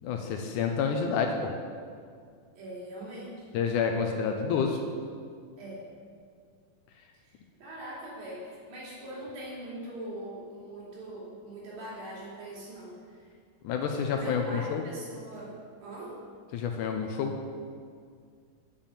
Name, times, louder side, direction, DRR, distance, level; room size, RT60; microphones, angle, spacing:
voice 1, 0.0-1.5 3.5-4.8 13.6-14.8 16.5-17.3, left 6 dB, 75° left, 4 dB, 2.0 m, -29 dB
voice 2, 2.6-3.5 5.6-5.8 7.2-13.3 14.1-15.5 15.8-16.2, right 1 dB, 85° right, -6 dB, 4.6 m, -42 dB
8.8 x 7.4 x 7.1 m, 2.2 s
omnidirectional pair, 4.1 m